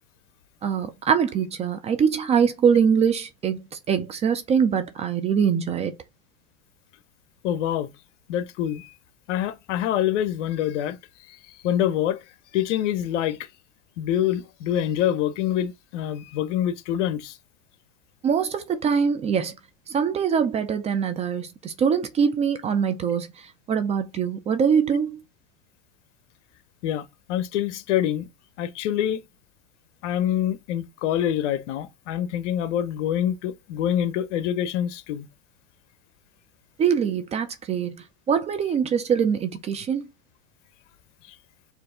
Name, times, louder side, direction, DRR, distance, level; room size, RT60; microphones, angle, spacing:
voice 1, 0.6-5.9 18.2-19.5 19.9-25.2 36.8-37.9 38.3-40.1, right 7 dB, 20° right, 0.3 m, -23 dB
voice 2, 7.4-7.9 8.3-8.9 9.3-11.0 11.6-12.2 12.5-13.4 14.0-17.3 26.8-28.3 28.6-29.2 30.0-35.3, left 11 dB, 75° left, 0.7 m, -25 dB
4.5 x 2.6 x 3.7 m
supercardioid pair, 120°, 37 cm